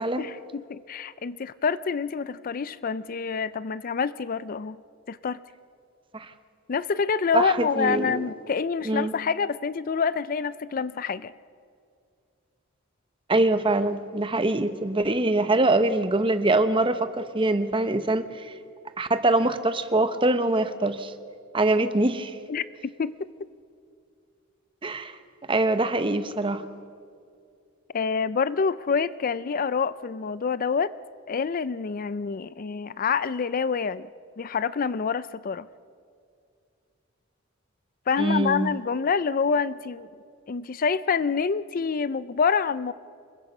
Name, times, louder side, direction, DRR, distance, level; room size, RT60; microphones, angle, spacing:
voice 1, 0.2-4.8 5.1-5.4 6.7-11.3 22.5-23.1 27.9-30.9 31.3-34.1 34.4-35.7 38.1-40.1 40.5-42.9, left 5 dB, 45° left, 17 dB, 0.4 m, -27 dB
voice 2, 7.3-8.3 8.8-9.1 13.3-18.5 19.0-21.1 21.5-22.4 24.8-25.2 25.5-26.6 38.2-38.8, right 2 dB, 25° right, 10 dB, 0.9 m, -24 dB
26.5 x 22.0 x 5.4 m, 2.3 s
head